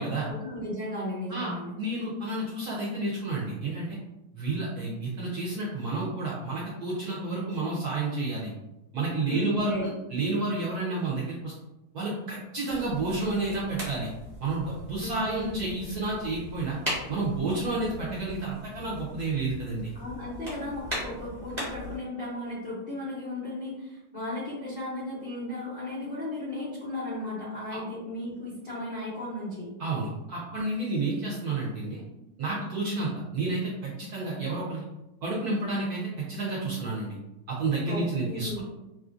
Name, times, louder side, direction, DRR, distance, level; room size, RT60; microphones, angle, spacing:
voice 1, 0.2-1.7 9.3-9.9 15.0-15.8 19.9-29.7 37.8-38.6, left 1 dB, 80° left, -8 dB, 0.5 m, -35 dB
voice 2, 1.3-4.0 4.3-8.5 8.9-11.5 11.9-14.1 14.4-16.8 17.1-19.9 27.7-27.8 29.8-32.0 32.4-34.8 35.2-37.2 37.5-38.6, right 2 dB, 70° right, -6 dB, 0.9 m, -30 dB
sound 1, 12.6-22.0, left 1 dB, 20° right, 0.8 m, -39 dB
3.1 x 2.5 x 2.4 m, 0.98 s
omnidirectional pair, 2.2 m